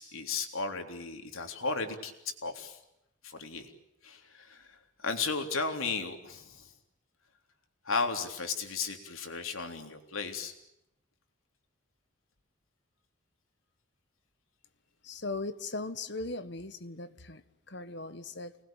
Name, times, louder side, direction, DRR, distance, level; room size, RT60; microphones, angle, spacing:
voice 1, 0.0-2.8 3.2-3.7 4.0-6.7 7.9-10.5, left 4 dB, 80° left, 3.5 m, -35 dB
voice 2, 15.0-18.6, left 3 dB, 55° left, 1.5 m, -39 dB
29.5 x 20.5 x 9.1 m
head